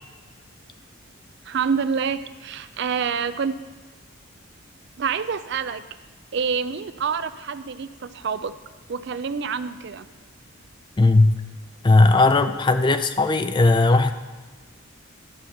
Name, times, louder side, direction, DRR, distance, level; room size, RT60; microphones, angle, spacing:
voice 1, 1.4-3.5 5.0-5.9 6.3-8.5 8.9-10.1, right 6 dB, 55° right, 13 dB, 0.4 m, -27 dB
voice 2, 11.0-11.4 11.8-14.1, left 2 dB, 20° left, 9 dB, 0.4 m, -17 dB
11.5 x 5.7 x 6.5 m, 1.3 s
head